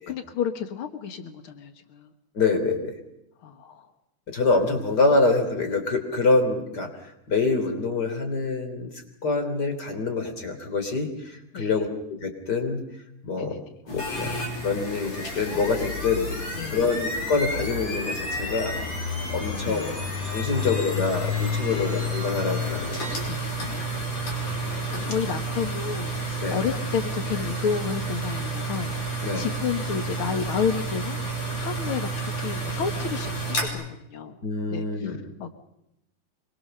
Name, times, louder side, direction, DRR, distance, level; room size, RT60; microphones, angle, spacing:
voice 1, 0.1-2.1 3.4-3.9 11.5-11.7 13.4-13.6 16.5-17.0 19.5-20.1 20.5-20.6 21.7-21.9 23.2-23.5 24.7-26.1 26.5-34.4 34.7-35.6, left 7 dB, 70° left, 8 dB, 1.3 m, -31 dB
voice 2, 2.3-3.0 4.3-8.9 9.2-12.8 13.2-14.4 14.6-16.2 16.7-18.7 19.3-19.9 20.2-23.0 26.4-26.6 29.2-29.5 34.4-35.2, left 3 dB, 25° left, 6 dB, 3.6 m, -25 dB
sound 1, 13.9-33.7, equal, 45° left, 6.1 m, -30 dB
25.5 x 23.0 x 6.7 m, 0.84 s
omnidirectional pair, 4.3 m